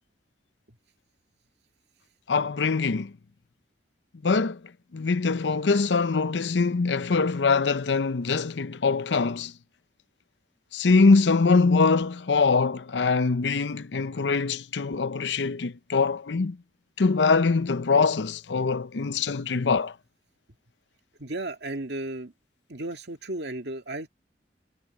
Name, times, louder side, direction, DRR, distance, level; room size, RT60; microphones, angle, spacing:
voice 1, 2.3-3.1 4.2-4.6 4.9-9.5 10.7-16.6 17.0-19.9, left 4 dB, 85° left, 0.6 m, -23 dB
voice 2, 21.2-22.3 22.7-24.1, right 2 dB, 70° right, 2.2 m, -34 dB
head